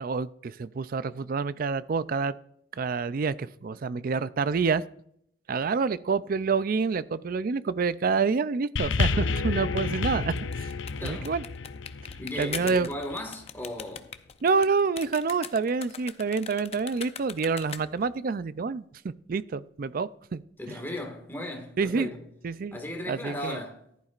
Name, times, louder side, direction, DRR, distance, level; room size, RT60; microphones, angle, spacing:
voice 1, 0.0-2.4 2.7-4.8 5.5-10.3 10.6-10.7 11.0-11.4 12.4-12.9 14.4-20.4 21.8-22.1 22.4-22.8 23.1-23.6, right 5 dB, 50° right, 0.4 m, -27 dB
sound 1, 8.8-13.3 14.1-14.2, left 4 dB, 75° left, 0.6 m, -30 dB
sound 2, 10.2-18.1, left 7 dB, 35° left, 0.5 m, -41 dB
voice 2, 11.0-11.4 12.2-14.1 20.6-22.2 22.7-23.9, left 1 dB, 10° left, 1.8 m, -36 dB
14.5 x 11.5 x 2.5 m
head